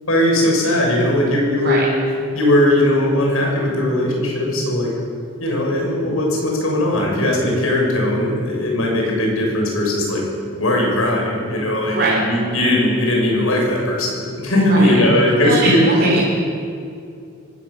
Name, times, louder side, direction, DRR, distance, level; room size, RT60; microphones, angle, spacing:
voice 1, 0.1-1.9 2.3-4.9 5.4-10.2 10.6-16.2, left 1 dB, 80° left, -1 dB, 7.1 m, -18 dB
voice 2, 11.8-12.2 14.7-15.0 15.4-16.2, right 3 dB, 50° right, -3 dB, 3.5 m, -21 dB
25.0 x 17.0 x 7.2 m, 2.4 s
head